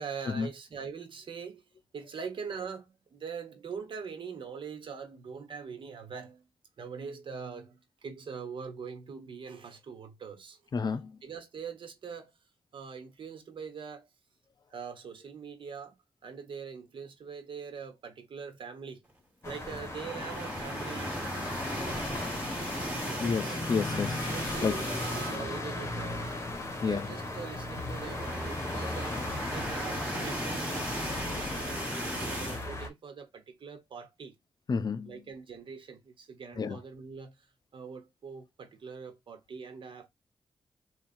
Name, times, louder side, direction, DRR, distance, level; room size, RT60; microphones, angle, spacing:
voice 1, 0.0-1.6 1.9-6.5 6.8-10.6 11.2-12.3 12.7-14.1 14.7-15.9 16.2-19.0 19.4-21.3 21.6-22.0 22.8-23.8 24.3-26.1 26.8-31.8 32.2-34.3 35.1-37.5 37.7-40.1, right 6 dB, 65° right, 1.1 m, -43 dB
voice 2, 10.7-11.1 23.2-24.2 24.6-24.8 26.8-27.1 34.7-35.1 36.6-36.8, left 5 dB, 50° left, 0.5 m, -30 dB
sound 1, 19.4-32.9, left 2 dB, 30° left, 1.2 m, -37 dB
sound 2, 19.8-25.6 26.0-26.2 26.5-26.6 27.6-32.6, equal, 15° right, 1.7 m, -37 dB
3.5 x 2.4 x 4.2 m
cardioid pair, 65°, 9 cm